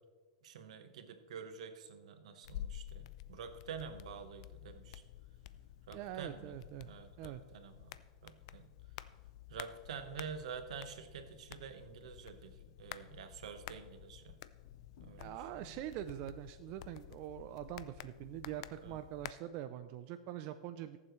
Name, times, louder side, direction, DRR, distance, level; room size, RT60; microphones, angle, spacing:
voice 1, 0.4-5.0 5.9-6.6 6.8-8.7 9.5-14.4 15.0-15.3 18.8-19.0, right 6 dB, 80° right, 8 dB, 1.2 m, -48 dB
sound 1, 2.4-19.3, left 12 dB, 60° left, 0.4 m, -51 dB
voice 2, 5.9-6.9 7.2-7.4 15.2-21.0, right 12 dB, 45° right, 10 dB, 0.4 m, -44 dB
19.0 x 7.4 x 3.2 m, 1.4 s
supercardioid pair, 140°, 3 cm